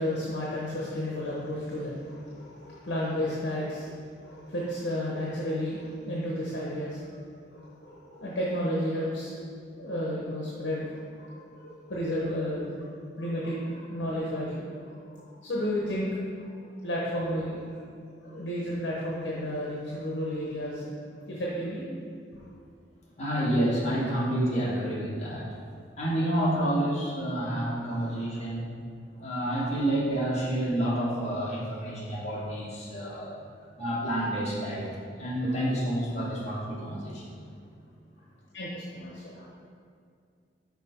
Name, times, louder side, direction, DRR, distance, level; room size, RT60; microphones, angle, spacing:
voice 1, 0.0-3.9 4.2-7.2 7.5-9.4 9.8-12.9 13.2-16.1 16.4-16.5 16.8-17.8 18.2-20.9 21.3-21.8 28.1-28.4 33.0-33.2 38.5-39.5, equal, 80° left, -5 dB, 1.0 m, -32 dB
voice 2, 23.2-25.5 26.0-28.7 29.2-33.3 33.8-37.3, right 1 dB, 40° left, -7 dB, 1.6 m, -29 dB
5.8 x 4.8 x 4.5 m, 2.3 s
head